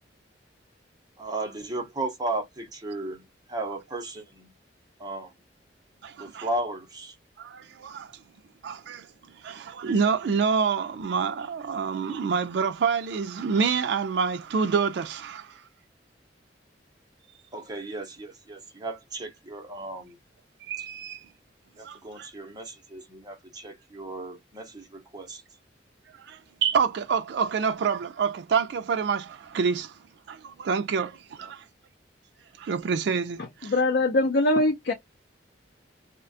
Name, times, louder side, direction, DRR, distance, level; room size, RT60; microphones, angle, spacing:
voice 1, 1.2-4.5 5.0-5.3 6.2-7.2 17.5-20.2 21.8-25.4 31.4-31.5, right 2 dB, 20° right, 0.7 m, -35 dB
voice 2, 6.0-6.5 7.4-8.1 8.6-9.1 9.4-15.6 20.7-21.2 21.8-22.3 26.2-29.9 30.3-31.6 32.6-33.7, right 6 dB, 65° right, 0.3 m, -27 dB
voice 3, 33.6-34.9, left 2 dB, 70° left, 0.6 m, -22 dB
2.4 x 2.2 x 2.5 m
head